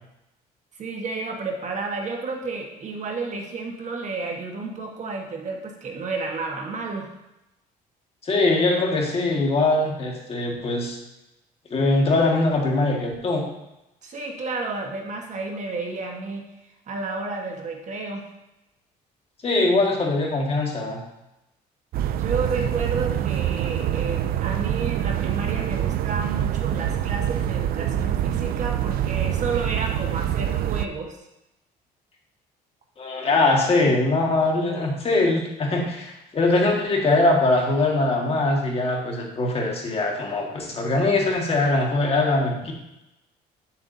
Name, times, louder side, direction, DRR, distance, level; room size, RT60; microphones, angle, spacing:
voice 1, 0.8-7.1 14.0-16.4 16.9-18.2 22.0-31.2, right 3 dB, 45° right, 1 dB, 1.4 m, -31 dB
voice 2, 8.2-11.0 11.7-13.4 19.4-21.0 33.0-42.7, left 2 dB, 35° left, -1 dB, 1.8 m, -22 dB
atmo wind leaves water traffic, 21.9-30.9, right 11 dB, 65° right, 0.4 m, -25 dB
8.8 x 7.2 x 2.7 m, 0.90 s
cardioid pair, 110°, 17 cm